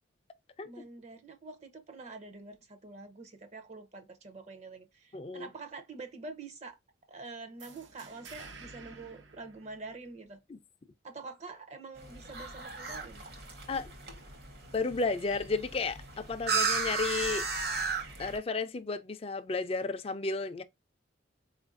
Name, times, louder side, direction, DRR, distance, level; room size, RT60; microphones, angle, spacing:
voice 1, 0.6-6.8 7.1-10.4 11.0-13.2, right 3 dB, 35° right, 0.6 m, -46 dB
voice 2, 5.1-5.5 10.5-10.6 13.7-13.9 14.7-17.4 18.2-20.6, left 3 dB, 30° left, 0.4 m, -33 dB
sound 1, 7.6-10.3, right 4 dB, 80° right, 0.7 m, -51 dB
sound 2, 12.0-18.4, right 5 dB, 55° right, 0.9 m, -35 dB
4.4 x 2.5 x 2.4 m
head